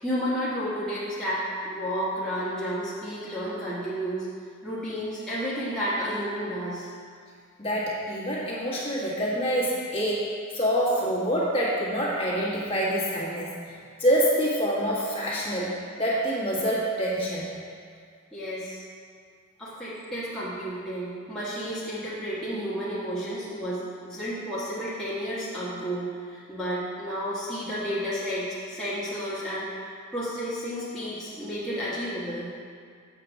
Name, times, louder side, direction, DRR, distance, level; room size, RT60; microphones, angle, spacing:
voice 1, 0.0-4.3 4.6-6.9 18.3-18.8 19.6-32.5, equal, 5° left, -11 dB, 1.4 m, -31 dB
voice 2, 7.6-10.3 10.5-13.5 14.0-17.5, equal, 25° left, -7 dB, 1.6 m, -26 dB
7.7 x 4.3 x 6.4 m, 2.1 s
head